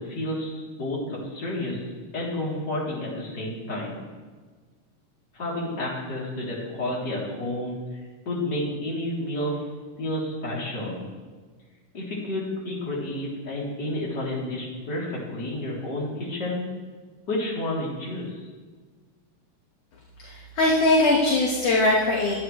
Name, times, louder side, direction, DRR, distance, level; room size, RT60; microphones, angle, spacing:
voice 1, 0.0-1.8 2.1-4.0 5.3-7.8 8.3-9.6 10.0-11.0 11.9-16.6 17.3-18.3, left 1 dB, 30° left, -5 dB, 3.7 m, -30 dB
voice 2, 20.2-22.3, left 2 dB, 55° left, -3 dB, 2.3 m, -21 dB
25.5 x 9.5 x 3.2 m, 1.4 s
omnidirectional pair, 3.7 m